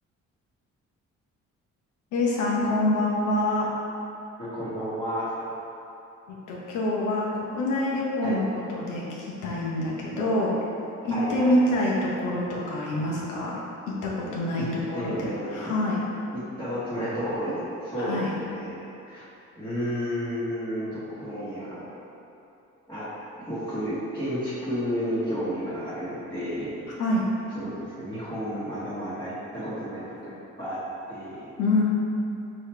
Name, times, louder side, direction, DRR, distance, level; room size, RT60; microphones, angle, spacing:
voice 1, 2.1-3.7 6.3-10.5 11.0-13.5 14.0-15.2 15.5-16.0 18.0-18.3 27.0-27.2 31.6-31.8, left 1 dB, 85° left, -4 dB, 1.0 m, -26 dB
voice 2, 4.4-5.3 8.2-8.4 11.1-11.6 14.6-14.7 14.9-15.7 16.3-19.3 19.6-21.9 22.9-23.1 23.4-26.7 27.5-30.8 31.1-31.5, equal, 15° left, -15 dB, 1.4 m, -32 dB
4.8 x 3.1 x 3.4 m, 2.9 s
cardioid pair, 90°, 30 cm